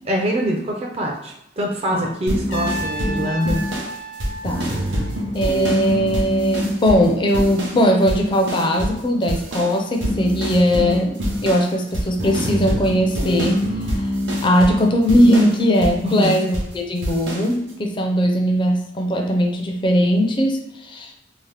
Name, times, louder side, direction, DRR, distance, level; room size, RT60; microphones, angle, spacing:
voice 1, 0.0-3.6 16.0-16.3, equal, 35° right, 0 dB, 0.4 m, -24 dB
sound 1, 2.3-9.0 9.3-16.7 17.0-17.5, equal, 70° right, 0.8 m, -25 dB
Trumpet, 2.5-5.5, right 1 dB, 80° left, 0.7 m, -32 dB
voice 2, 4.4-4.7 5.3-13.7 14.4-21.1, equal, 25° left, 2 dB, 0.4 m, -19 dB
2.8 x 2.0 x 3.2 m, 0.83 s
head